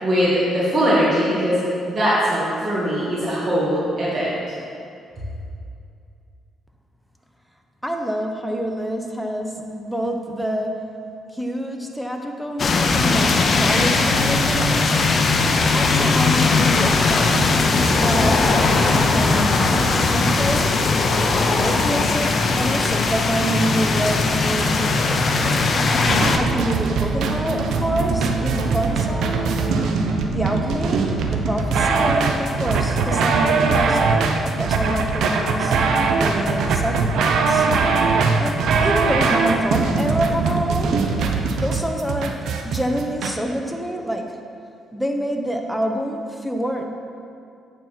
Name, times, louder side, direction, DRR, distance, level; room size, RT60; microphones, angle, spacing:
voice 1, 0.0-1.6 1.9-4.3, equal, 40° right, -10 dB, 2.1 m, -20 dB
voice 2, 7.8-10.8 11.3-15.0 15.7-17.6 18.0-20.9 21.5-25.3 26.1-29.4 30.3-35.8 36.1-37.7 38.4-40.9 41.5-42.4 42.6-44.4 44.9-46.8, equal, ahead, 3 dB, 0.9 m, -27 dB
sound 1, 12.6-26.4, left 3 dB, 45° left, 0.7 m, -19 dB
sound 2, 26.1-43.3, right 4 dB, 75° right, 0.7 m, -21 dB
9.2 x 4.5 x 5.9 m, 2.5 s
cardioid pair, 90°, 0 cm